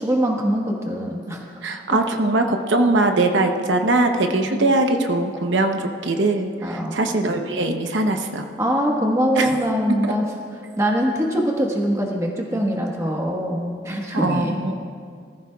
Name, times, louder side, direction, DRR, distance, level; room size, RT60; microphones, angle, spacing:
voice 1, 0.0-1.4 1.9-2.0 4.5-4.7 6.6-7.0 8.6-10.2 10.8-14.6, equal, 15° right, 0 dB, 1.4 m, -23 dB
voice 2, 1.6-8.5 9.4-9.5 14.1-14.7, right 2 dB, 90° right, 5 dB, 0.9 m, -21 dB
20.5 x 14.0 x 2.4 m, 2.2 s
head